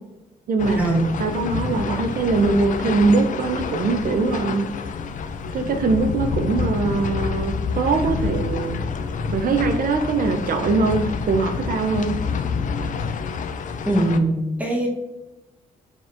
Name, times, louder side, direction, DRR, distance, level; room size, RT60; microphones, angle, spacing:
voice 1, 0.5-4.7 5.5-8.8 9.3-12.2, right 3 dB, 60° right, 6 dB, 0.5 m, -22 dB
sound 1, 0.6-14.2, left 5 dB, 50° left, 0.4 m, -28 dB
voice 2, 13.9-14.9, right 1 dB, 10° right, -1 dB, 1.1 m, -21 dB
3.9 x 2.9 x 2.5 m, 1.0 s
supercardioid pair, 50°, 17 cm